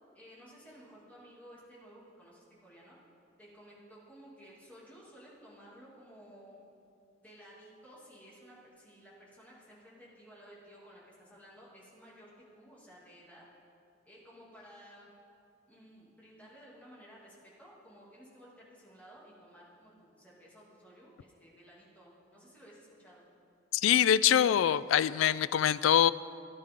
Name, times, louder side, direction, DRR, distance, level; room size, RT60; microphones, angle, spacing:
voice 1, 0.1-3.0 3.4-6.6 7.2-13.4 14.0-15.1 15.7-23.2, equal, 10° left, -7 dB, 2.8 m, -55 dB
voice 2, 23.7-26.1, left 10 dB, 85° left, 17 dB, 0.3 m, -24 dB
17.5 x 10.5 x 3.8 m, 2.6 s
head